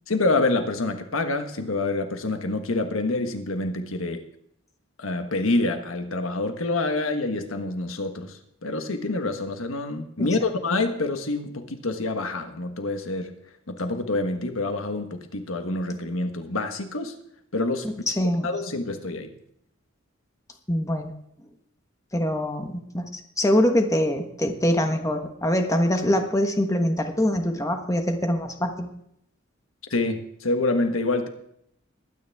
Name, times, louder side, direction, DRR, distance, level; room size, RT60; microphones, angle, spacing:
voice 1, 0.1-4.2 5.0-13.3 13.7-17.1 17.5-17.9 18.4-19.3 29.9-31.3, left 2 dB, 85° left, 7 dB, 1.4 m, -27 dB
voice 2, 17.8-18.5 20.7-21.1 22.1-28.9, left 1 dB, 15° left, 5 dB, 1.3 m, -24 dB
21.5 x 9.6 x 3.5 m, 0.73 s
head